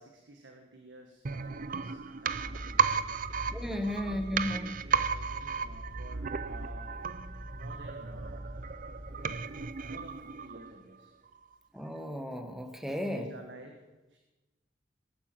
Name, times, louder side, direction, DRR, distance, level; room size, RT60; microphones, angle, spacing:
voice 1, 0.0-3.1 3.6-6.9 7.5-8.5 9.8-11.1 12.8-14.2, right 2 dB, 85° right, 3 dB, 1.7 m, -52 dB
sound 1, 1.2-10.9 11.3-11.4, right 6 dB, 50° right, 0.6 m, -34 dB
sound 2, 2.3-10.6, equal, 30° right, 1.7 m, -45 dB
voice 2, 3.5-4.7 11.7-13.3, left 1 dB, ahead, 7 dB, 1.4 m, -34 dB
19.0 x 11.0 x 6.1 m, 1.1 s
head